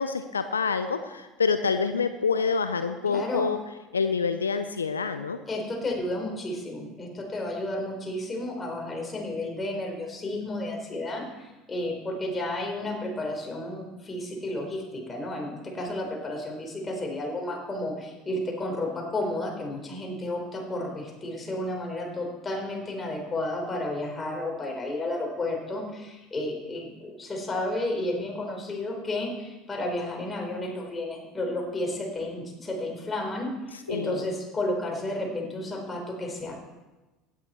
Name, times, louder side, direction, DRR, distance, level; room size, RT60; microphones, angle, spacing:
voice 1, 0.0-3.6 3.9-5.4 33.9-34.2, left 5 dB, 85° left, 10 dB, 0.5 m, -27 dB
voice 2, 3.1-3.5 5.5-36.6, left 1 dB, 20° left, 0 dB, 4.2 m, -32 dB
16.0 x 10.5 x 4.4 m, 1.1 s
figure-of-eight pair, 70°, 0 cm